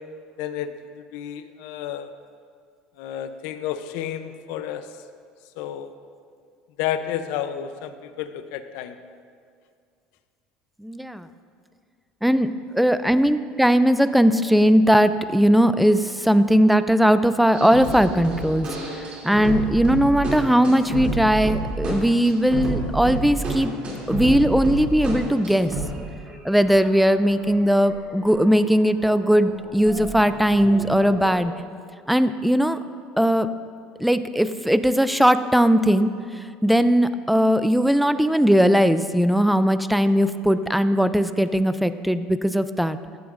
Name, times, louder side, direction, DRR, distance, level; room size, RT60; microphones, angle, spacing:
voice 1, 0.4-2.1 3.0-4.8 5.6-5.9 6.8-9.0, left 10 dB, 80° left, 10 dB, 0.6 m, -31 dB
voice 2, 10.8-11.3 12.2-18.7 19.2-23.7 24.1-25.7 26.4-31.5 32.1-32.8 33.2-33.5 34.0-36.1 36.6-43.0, equal, ahead, 12 dB, 0.3 m, -19 dB
sound 1, 17.5-26.0 26.3-26.4 26.6-28.6 28.9-31.4, right 2 dB, 40° right, 2.8 m, -31 dB
15.0 x 10.0 x 2.5 m, 2.2 s
cardioid pair, 135°, 3 cm